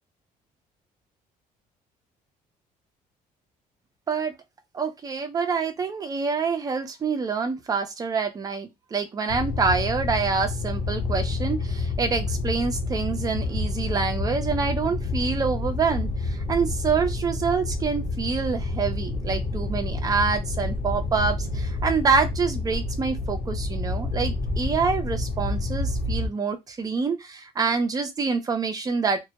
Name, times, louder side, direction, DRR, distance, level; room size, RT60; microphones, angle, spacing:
voice 1, 4.7-29.2, right 5 dB, 25° right, 0.5 m, -26 dB
sound 1, 9.3-26.3, left 3 dB, 40° left, 0.8 m, -29 dB
2.2 x 2.0 x 2.7 m
cardioid pair, 155°, 16 cm